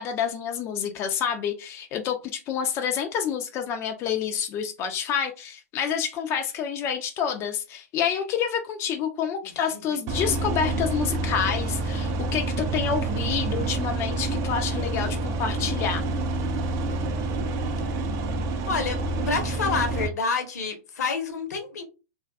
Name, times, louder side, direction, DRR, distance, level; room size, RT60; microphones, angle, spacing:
voice 1, 0.0-16.0, left 7 dB, 30° left, 0.4 m, -28 dB
voice 2, 9.4-10.0 18.1-18.2 18.7-19.0 19.3-21.8, left 5 dB, 75° left, 0.8 m, -28 dB
sound 1, 10.1-20.1, right 2 dB, 35° right, 0.4 m, -28 dB
2.5 x 2.3 x 2.2 m
hypercardioid pair, 115°, 9 cm